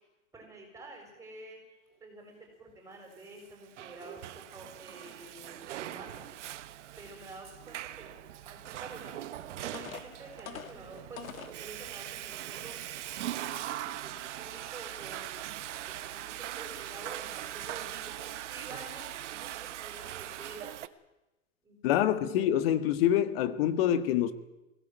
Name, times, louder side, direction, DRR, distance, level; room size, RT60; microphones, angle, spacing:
voice 1, 0.3-6.3 7.0-9.2 9.5-12.8 13.2-15.4 15.8-20.8 21.6-22.3, right 2 dB, 5° right, 6.7 m, -49 dB
Water / Toilet flush, 3.4-20.9, right 13 dB, 60° right, 1.3 m, -41 dB
sound 1, 9.2-9.3 9.7-11.6 12.3-12.4 12.9-13.1, left 7 dB, 80° left, 2.7 m, -44 dB
voice 2, 21.8-24.3, left 11 dB, 45° left, 1.7 m, -26 dB
22.0 x 17.5 x 9.3 m
hypercardioid pair, 145°, 41 cm